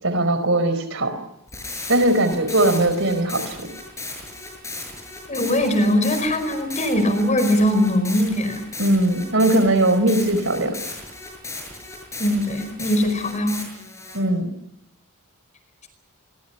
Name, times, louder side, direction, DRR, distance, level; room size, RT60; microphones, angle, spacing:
voice 1, 0.0-1.2 1.9-3.7 8.8-10.8 14.1-14.5, right 1 dB, 60° right, 11 dB, 4.6 m, -20 dB
sound 1, 1.5-14.2, left 2 dB, 15° left, 7.8 m, -36 dB
voice 2, 5.3-8.6 12.2-13.6, left 1 dB, 35° left, 9 dB, 4.9 m, -21 dB
29.5 x 24.0 x 5.8 m, 0.83 s
head